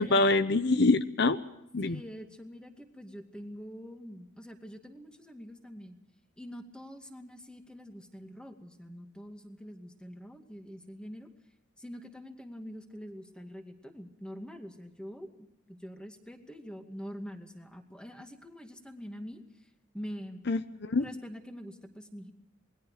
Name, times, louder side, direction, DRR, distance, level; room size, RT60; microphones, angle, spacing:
voice 1, 0.0-1.4 1.7-2.0 20.5-21.0, left 3 dB, 60° left, 12 dB, 0.8 m, -25 dB
voice 2, 1.8-6.0 6.4-11.3 11.8-19.4 19.9-20.4 21.0-22.3, equal, 5° left, 5 dB, 2.2 m, -45 dB
28.0 x 21.0 x 4.9 m, 0.81 s
head